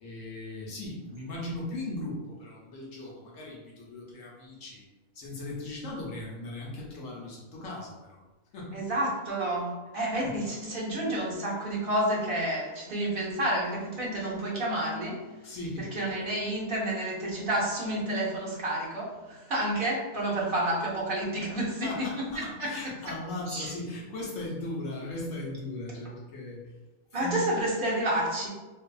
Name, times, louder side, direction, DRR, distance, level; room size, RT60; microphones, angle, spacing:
voice 1, 0.0-4.8 5.1-8.2 8.5-8.8 10.2-10.3 15.4-16.3 21.7-26.7 27.2-27.5, left 1 dB, 65° left, -4 dB, 0.9 m, -38 dB
voice 2, 8.7-15.2 15.8-22.1 22.6-22.7 23.5-23.7 27.1-28.5, right 1 dB, 50° right, -5 dB, 0.6 m, -30 dB
2.6 x 2.3 x 2.3 m, 1.2 s
omnidirectional pair, 1.6 m